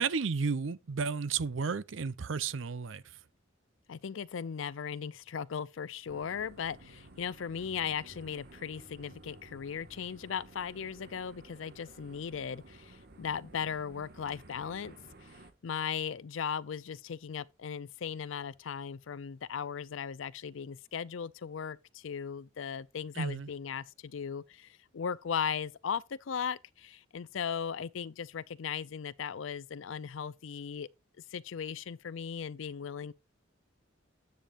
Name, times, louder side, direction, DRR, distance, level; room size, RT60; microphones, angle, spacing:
voice 1, 0.0-3.0 23.2-23.5, right 5 dB, 75° right, 0.6 m, -32 dB
voice 2, 3.9-14.9 15.2-30.9 31.3-33.1, left 7 dB, 75° left, 0.5 m, -37 dB
sound 1, 6.1-15.5, right 2 dB, 55° right, 1.6 m, -54 dB
10.5 x 7.1 x 2.5 m
head